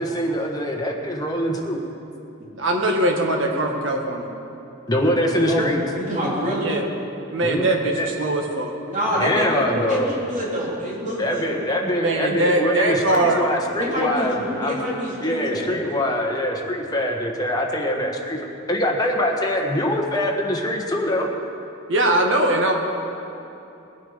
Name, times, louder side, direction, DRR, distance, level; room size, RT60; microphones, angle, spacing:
voice 1, 0.0-1.8 4.9-5.8 7.4-8.1 9.2-10.1 11.2-14.8 15.2-18.4 18.7-21.3, equal, 20° left, 1 dB, 1.4 m, -23 dB
voice 2, 2.6-4.3 6.6-6.8 7.3-8.7 12.0-13.4 21.9-22.7, right 1 dB, 70° right, 2 dB, 1.8 m, -21 dB
voice 3, 5.5-6.7 8.9-11.6 13.8-15.8, equal, 40° right, -6 dB, 3.7 m, -26 dB
20.0 x 8.6 x 5.2 m, 2.9 s
head